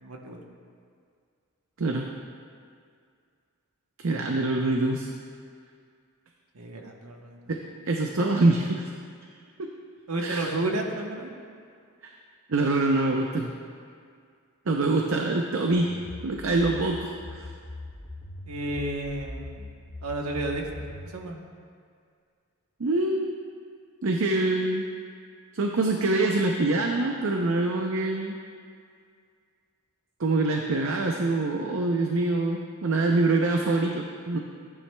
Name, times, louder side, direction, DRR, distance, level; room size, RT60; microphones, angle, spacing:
voice 1, 0.0-0.4 6.5-7.4 10.1-11.3 18.5-19.7 20.0-20.6 21.1-21.4, right 2 dB, 85° right, 2 dB, 1.0 m, -31 dB
voice 2, 4.0-5.1 7.5-8.9 9.6-9.7 10.2-10.5 12.0-12.1 12.5-13.5 14.7-15.9 16.2-17.5 22.8-23.3 24.0-24.9 25.5-28.4 30.2-34.4, right 2 dB, 65° right, 1 dB, 0.6 m, -25 dB
sound 1, 15.7-21.1, left 2 dB, 30° left, 2.2 m, -41 dB
14.0 x 9.8 x 2.3 m, 2.2 s
head